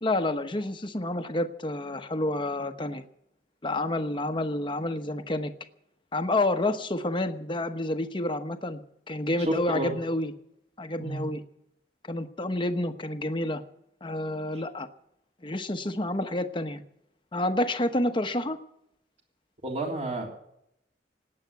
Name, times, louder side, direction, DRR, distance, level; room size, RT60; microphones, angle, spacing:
voice 1, 0.0-3.0 3.6-5.5 6.1-8.8 9.1-10.3 10.8-11.4 12.1-13.6 14.0-14.9 15.4-16.8 17.3-18.6, left 1 dB, 30° left, 7 dB, 1.1 m, -29 dB
voice 2, 9.4-9.9 10.9-11.2 19.6-20.3, right 1 dB, 40° right, 1 dB, 3.3 m, -30 dB
18.5 x 8.9 x 8.2 m, 0.79 s
head